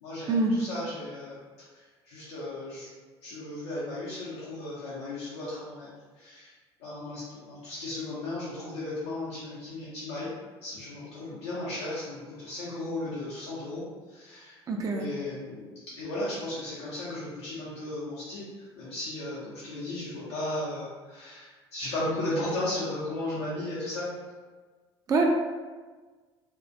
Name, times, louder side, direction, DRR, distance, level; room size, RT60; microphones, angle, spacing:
voice 1, 0.0-1.4 1.7-2.9 3.2-5.9 6.2-6.5 6.8-10.3 10.6-24.1, left 1 dB, 80° left, -9 dB, 0.6 m, -35 dB
voice 2, 14.7-15.1 25.1-25.3, right 3 dB, 25° right, 1 dB, 0.4 m, -24 dB
2.3 x 2.1 x 2.5 m, 1.4 s
hypercardioid pair, 60°, 14 cm